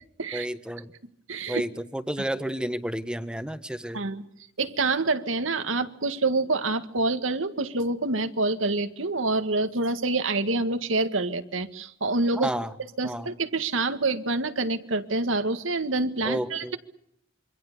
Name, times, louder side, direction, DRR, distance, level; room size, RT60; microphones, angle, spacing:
voice 1, 0.3-0.9 1.5-4.0 12.3-12.7 13.0-13.3 16.2-16.8, right 1 dB, 5° right, 10 dB, 1.4 m, -31 dB
voice 2, 1.3-1.6 3.9-4.2 4.6-12.5 13.0-16.8, right 3 dB, 85° right, 9 dB, 1.9 m, -27 dB
27.0 x 24.5 x 6.8 m, 0.76 s
head